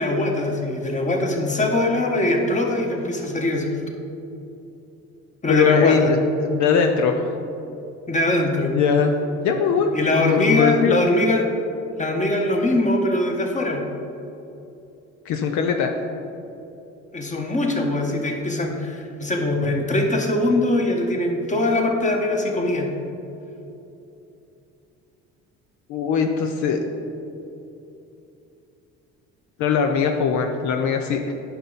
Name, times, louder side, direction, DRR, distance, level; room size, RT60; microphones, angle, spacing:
voice 1, 0.0-3.7 5.4-6.1 8.1-8.7 9.9-11.5 12.0-13.8 17.1-22.9, left 2 dB, 25° left, 1 dB, 1.4 m, -22 dB
voice 2, 5.5-6.2 6.4-7.3 8.7-11.0 15.3-15.9 25.9-26.8 29.6-31.3, left 6 dB, 70° left, 4 dB, 0.7 m, -21 dB
9.0 x 5.9 x 4.1 m, 2.8 s
supercardioid pair, 80°, 30 cm